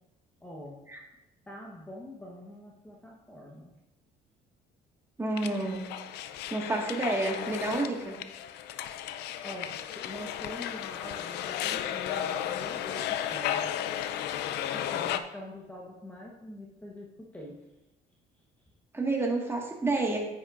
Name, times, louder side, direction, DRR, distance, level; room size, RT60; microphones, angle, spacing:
voice 1, 0.4-0.8 1.5-3.7 9.4-13.7 14.7-17.6, left 1 dB, 10° left, -3 dB, 1.1 m, -44 dB
voice 2, 5.2-5.9 6.5-8.2 18.9-20.2, right 2 dB, 15° right, 0 dB, 1.8 m, -29 dB
sound 1, 5.4-15.2, left 10 dB, 80° left, 0.5 m, -34 dB
9.7 x 8.5 x 2.5 m, 0.95 s
cardioid pair, 110°, 17 cm